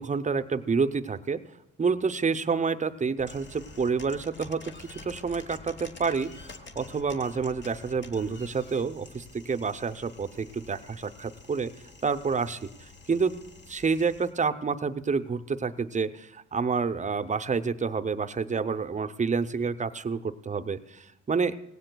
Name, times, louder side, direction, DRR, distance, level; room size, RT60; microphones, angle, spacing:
voice 1, 0.0-1.4 1.8-11.7 12.0-13.3 13.7-21.6, right 5 dB, 25° right, 10 dB, 0.6 m, -29 dB
sound 1, 3.2-14.3, left 3 dB, 35° left, 1.0 m, -48 dB
18.0 x 16.0 x 2.3 m, 0.88 s
cardioid pair, 90°, 30 cm